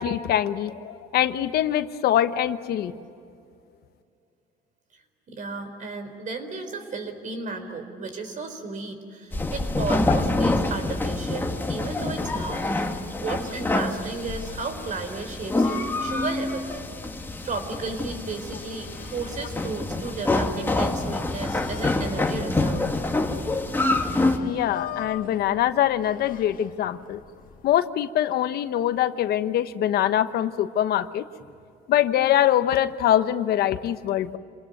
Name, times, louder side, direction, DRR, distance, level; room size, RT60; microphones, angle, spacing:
voice 1, 0.0-2.9 24.4-27.2 27.6-31.2 31.9-34.4, left 11 dB, 70° left, 11 dB, 1.1 m, -23 dB
voice 2, 5.3-12.7 13.2-16.8 17.4-22.9, right 3 dB, 50° right, 8 dB, 4.4 m, -34 dB
sound 1, 9.3-24.4, left 2 dB, 10° left, 2.0 m, -26 dB
sound 2, 12.1-27.8, left 8 dB, 55° left, 1.7 m, -44 dB
28.0 x 20.0 x 9.4 m, 2.5 s
cardioid pair, 110°, 17 cm